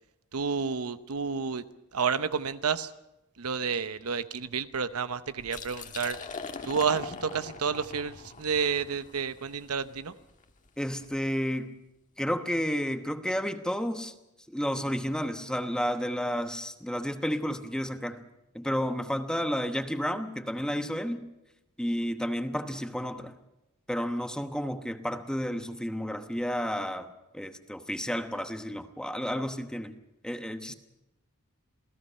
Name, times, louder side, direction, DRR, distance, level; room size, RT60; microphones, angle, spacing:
voice 1, 0.3-1.6 1.9-2.9 3.4-6.2 6.6-10.1, right 6 dB, 85° right, 0.9 m, -30 dB
Liquid, 5.4-11.1, left 4 dB, 35° left, 1.4 m, -42 dB
voice 2, 10.8-11.7 12.2-14.1 14.5-18.2 18.5-21.2 21.8-23.3 23.9-27.1 27.3-29.9 30.2-30.7, equal, 5° left, 1.0 m, -31 dB
28.0 x 17.0 x 5.6 m
head